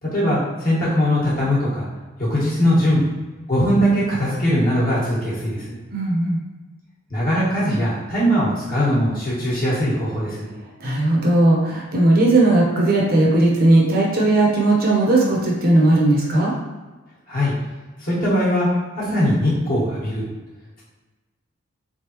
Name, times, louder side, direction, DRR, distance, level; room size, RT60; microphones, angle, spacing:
voice 1, 0.0-1.9 2.2-3.1 3.5-5.7 7.1-10.5 17.3-17.5 18.0-18.7 19.0-20.2, equal, 45° left, -8 dB, 1.5 m, -20 dB
voice 2, 5.9-6.4 10.8-16.5, right 2 dB, 45° right, -3 dB, 0.7 m, -17 dB
3.8 x 3.4 x 3.0 m, 1.2 s
head